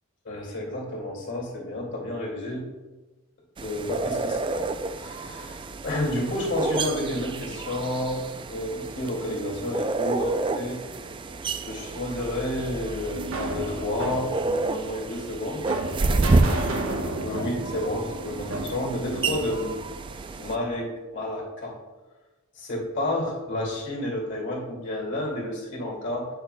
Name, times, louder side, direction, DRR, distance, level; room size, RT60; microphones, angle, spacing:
voice 1, 0.2-2.7 3.6-4.7 5.0-8.3 8.5-11.1 11.6-15.7 17.2-19.8 20.4-21.8 22.6-26.3, left 1 dB, 55° left, -3 dB, 2.1 m, -30 dB
sound 1, 3.6-20.6, right 3 dB, 25° right, 0.3 m, -30 dB
sound 2, 13.0-20.6, right 2 dB, 70° right, 1.0 m, -33 dB
9.5 x 6.5 x 2.2 m, 1.2 s
head